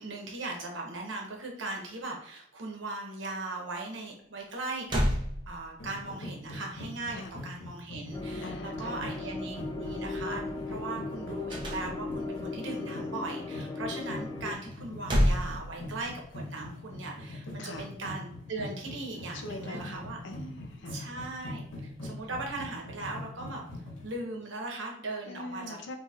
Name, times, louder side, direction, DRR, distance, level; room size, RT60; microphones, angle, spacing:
voice 1, 0.0-5.0 5.5-20.2 20.9-23.6 24.0-25.8, right 2 dB, 80° right, 0 dB, 0.9 m, -39 dB
sound 1, 4.5-4.6 4.9-6.0 11.5-12.4 14.7-16.3, equal, 25° right, 0.6 m, -29 dB
sound 2, 5.8-24.2, left 1 dB, 90° left, 1.2 m, -42 dB
sound 3, 8.1-14.5, left 3 dB, 20° left, 0.4 m, -37 dB
voice 2, 8.4-9.2 17.6-17.9 19.3-21.0 25.2-26.0, left 2 dB, 65° left, 5 dB, 0.5 m, -43 dB
4.2 x 2.8 x 2.4 m, 0.68 s
head